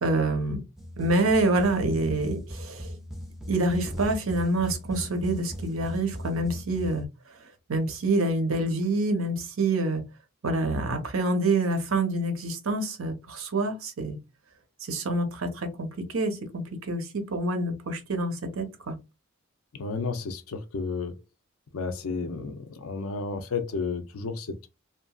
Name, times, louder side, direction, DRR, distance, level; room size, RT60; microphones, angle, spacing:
voice 1, 0.0-0.6 1.0-2.9 3.5-7.1 7.7-10.0 10.4-14.2 14.9-19.0, right 2 dB, 65° right, 0.8 m, -27 dB
sound 1, 0.8-7.1, equal, ahead, 0.4 m, -38 dB
voice 2, 19.7-21.1 21.7-24.7, left 4 dB, 70° left, 0.5 m, -32 dB
2.8 x 2.5 x 2.3 m
head